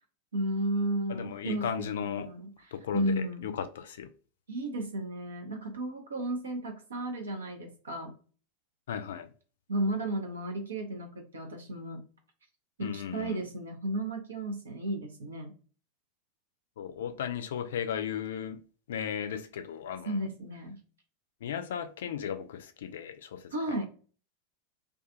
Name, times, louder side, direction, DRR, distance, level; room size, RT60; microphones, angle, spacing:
voice 1, 0.3-1.9 2.2-3.5 4.5-8.1 9.7-12.0 12.8-15.5 20.0-20.8 23.5-23.9, right 1 dB, 75° right, 0.7 m, -33 dB
voice 2, 1.1-2.3 2.7-4.1 8.9-9.3 12.8-13.4 16.8-18.6 18.9-20.2 21.4-23.5, left 8 dB, 65° left, 0.4 m, -36 dB
2.4 x 2.4 x 2.6 m
figure-of-eight pair, 90°, 0 cm